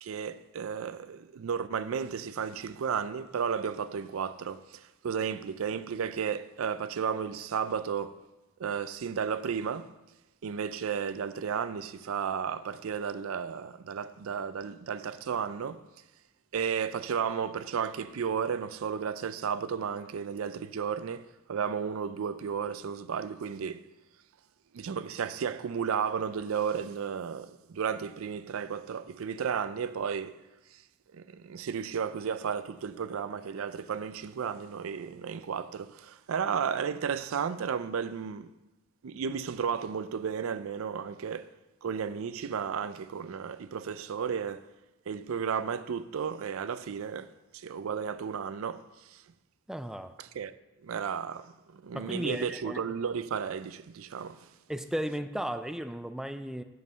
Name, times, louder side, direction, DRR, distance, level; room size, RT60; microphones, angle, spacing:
voice 1, 0.0-8.2 8.6-9.9 10.4-15.8 16.5-23.8 24.7-30.3 31.1-38.5 39.0-41.5 41.8-44.7 45.1-48.8 49.1-49.2 50.2-50.5 50.8-54.5, right 7 dB, 70° right, 0.4 m, -33 dB
voice 2, 49.7-50.1 51.9-52.8 54.7-56.6, equal, ahead, 0.3 m, -35 dB
7.8 x 5.4 x 6.7 m
head